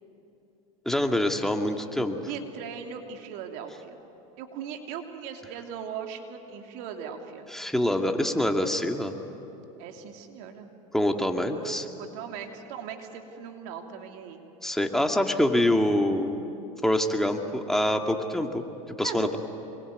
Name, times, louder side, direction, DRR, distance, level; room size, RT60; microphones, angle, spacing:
voice 1, 0.9-2.2 7.5-9.1 10.9-11.8 14.6-16.4 16.8-18.6 19.0-19.4, left 1 dB, ahead, 3 dB, 2.3 m, -25 dB
voice 2, 2.3-4.0 4.4-7.5 9.8-10.7 11.5-14.4 19.0-19.4, right 7 dB, 65° right, 4 dB, 2.9 m, -39 dB
25.5 x 23.0 x 9.4 m, 2.9 s
hypercardioid pair, 95°, 18 cm